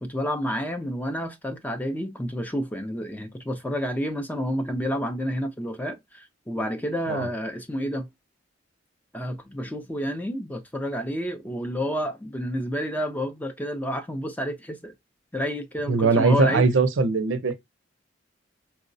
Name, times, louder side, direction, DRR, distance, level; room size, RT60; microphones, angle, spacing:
voice 1, 0.0-8.1 9.1-14.9 15.3-16.7, equal, 10° left, 0.4 m, -29 dB
voice 2, 15.9-17.6, right 4 dB, 80° right, 0.5 m, -21 dB
4.4 x 2.0 x 2.5 m
head